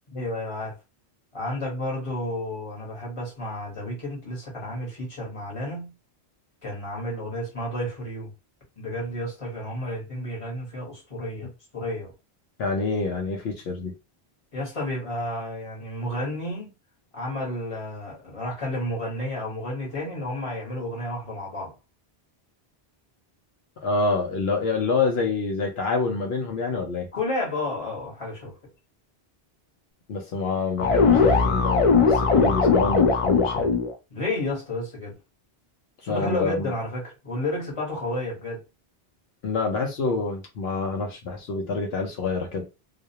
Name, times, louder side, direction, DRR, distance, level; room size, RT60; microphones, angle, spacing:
voice 1, 0.1-0.7 1.3-5.9 6.6-8.3 8.8-12.1 14.5-16.7 17.1-21.7 27.1-28.5 34.1-35.2 36.0-38.6, left 1 dB, 35° left, 1.1 m, -31 dB
voice 2, 12.6-13.9 23.8-27.1 30.1-33.7 36.1-36.6 39.4-42.7, left 4 dB, 75° left, 0.8 m, -27 dB
sound 1, 30.8-33.9, left 5 dB, 60° left, 0.3 m, -19 dB
2.3 x 2.1 x 2.7 m
omnidirectional pair, 1.1 m